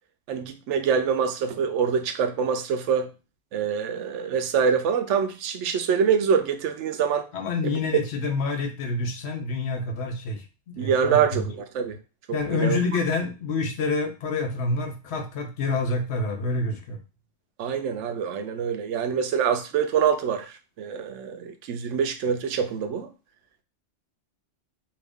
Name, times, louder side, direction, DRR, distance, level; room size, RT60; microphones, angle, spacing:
voice 1, 0.3-3.1 3.5-7.3 7.6-7.8 10.8-12.0 12.3-12.8 17.6-23.1, right 7 dB, 90° right, 0.9 m, -25 dB
voice 2, 7.3-11.5 12.3-17.0, left 3 dB, 70° left, 0.9 m, -27 dB
2.8 x 2.6 x 3.4 m
omnidirectional pair, 1.2 m